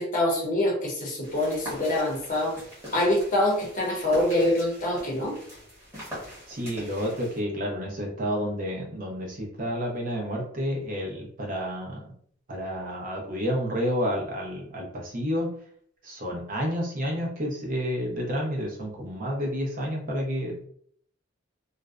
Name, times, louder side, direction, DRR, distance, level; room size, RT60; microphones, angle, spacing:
voice 1, 0.0-2.6 2.9-5.4, left 1 dB, 40° left, -2 dB, 0.7 m, -25 dB
sound 1, 1.2-7.4, equal, 15° right, 1.1 m, -42 dB
voice 2, 6.5-12.1 12.5-15.5 16.0-20.7, equal, 45° right, -2 dB, 0.7 m, -30 dB
2.5 x 2.1 x 2.3 m, 0.62 s
head